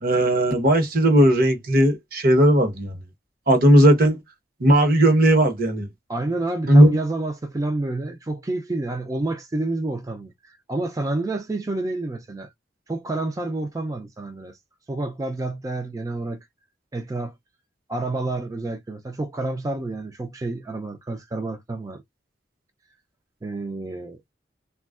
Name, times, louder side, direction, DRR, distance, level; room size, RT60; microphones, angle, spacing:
voice 1, 0.0-3.0 3.5-4.2 4.6-5.9 6.7-7.0, right 1 dB, 55° right, 0.9 m, -16 dB
voice 2, 6.1-12.5 12.9-14.6 14.9-16.4 16.9-17.3 17.9-22.0 23.4-24.2, right 2 dB, 20° right, 0.4 m, -29 dB
3.4 x 2.2 x 2.3 m
head